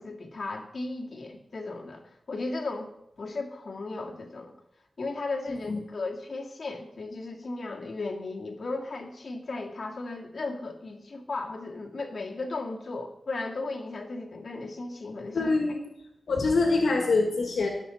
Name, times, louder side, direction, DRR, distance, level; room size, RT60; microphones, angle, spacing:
voice 1, 0.0-2.9 3.2-4.5 5.0-15.5, left 3 dB, 60° left, -1 dB, 2.0 m, -35 dB
voice 2, 5.5-5.8 15.3-15.8 16.3-17.7, left 3 dB, 80° left, 2 dB, 1.8 m, -25 dB
19.0 x 6.9 x 4.2 m, 0.81 s
cardioid pair, 65°, 0 cm